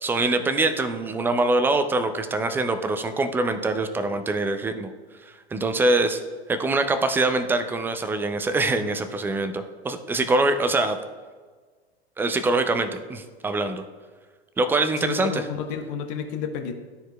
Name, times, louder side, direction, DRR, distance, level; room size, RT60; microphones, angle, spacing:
voice 1, 0.0-4.9 5.5-6.2 6.5-11.0 12.2-13.8 14.6-15.4, right 2 dB, 5° right, 8 dB, 0.3 m, -24 dB
voice 2, 15.0-16.7, left 7 dB, 50° left, 5 dB, 1.0 m, -31 dB
12.0 x 4.4 x 2.2 m, 1.4 s
hypercardioid pair, 100°, 32 cm